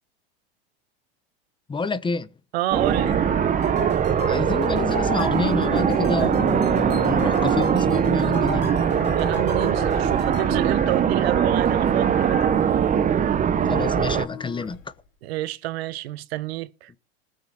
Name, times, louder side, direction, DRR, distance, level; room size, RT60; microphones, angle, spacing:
voice 1, 1.7-2.3 4.3-8.8 13.6-14.9 16.9-17.0, left 4 dB, 15° left, 0.9 m, -28 dB
voice 2, 2.5-3.2 9.1-12.6 15.2-16.9, right 15 dB, 75° right, 0.9 m, -29 dB
sound 1, 2.7-14.3, right 8 dB, 25° right, 0.8 m, -21 dB
Singing, 2.8-15.0, left 10 dB, 65° left, 3.8 m, -39 dB
sound 2, 3.6-10.5, left 8 dB, 35° left, 1.9 m, -36 dB
19.5 x 6.7 x 4.4 m
hypercardioid pair, 105°, 31 cm